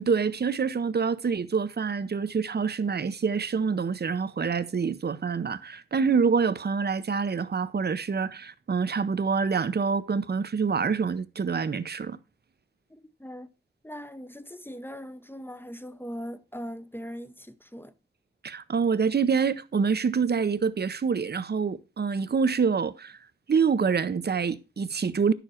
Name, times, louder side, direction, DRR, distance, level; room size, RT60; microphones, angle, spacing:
voice 1, 0.0-12.2 18.4-23.2 23.5-25.3, right 5 dB, 55° right, 0.7 m, -26 dB
voice 2, 12.9-13.5 13.8-17.5 17.7-17.9, equal, 10° left, 0.7 m, -40 dB
10.0 x 7.1 x 4.3 m
wide cardioid pair, 60°, 20 cm